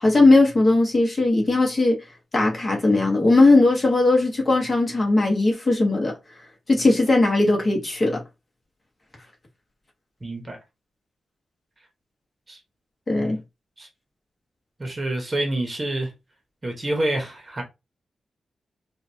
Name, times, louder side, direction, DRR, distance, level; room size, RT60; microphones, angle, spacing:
voice 1, 0.0-2.0 2.3-6.1 6.7-8.2 13.1-13.4, left 2 dB, 30° left, 1.3 m, -18 dB
voice 2, 10.2-10.6 12.5-12.6 13.8-13.9 14.8-16.1 16.6-17.6, right 1 dB, 25° right, 1.1 m, -27 dB
5.0 x 2.4 x 2.8 m
wide cardioid pair, 145°, 0 cm